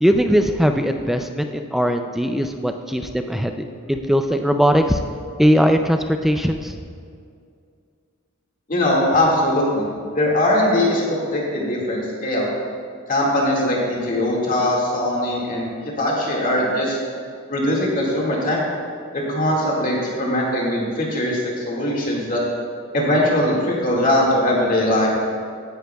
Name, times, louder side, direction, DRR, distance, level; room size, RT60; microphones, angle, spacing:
voice 1, 0.0-5.0 5.4-6.7, equal, ahead, 5 dB, 0.3 m, -19 dB
voice 2, 8.7-12.5 13.1-17.0 17.5-18.6 19.1-22.4 22.9-25.1, left 1 dB, 40° left, -3 dB, 2.0 m, -21 dB
16.5 x 10.0 x 2.3 m, 2.2 s
head